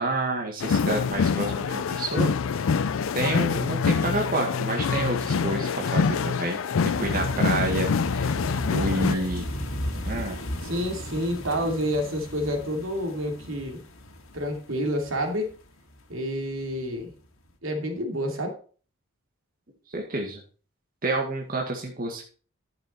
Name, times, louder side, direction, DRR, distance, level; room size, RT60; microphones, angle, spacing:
voice 1, 0.0-9.5 10.1-10.4 19.9-20.4 21.0-22.2, right 2 dB, 45° right, 0 dB, 1.9 m, -29 dB
sound 1, 0.6-9.2, left 5 dB, 70° left, 0.4 m, -25 dB
sound 2, 6.9-16.0 16.5-16.7 17.0-17.1, equal, 85° left, 1.8 m, -35 dB
voice 2, 10.6-13.8 14.3-15.5 16.1-17.1 17.6-18.6, equal, 75° right, 3 dB, 2.7 m, -29 dB
11.5 x 6.8 x 4.4 m, 0.39 s
head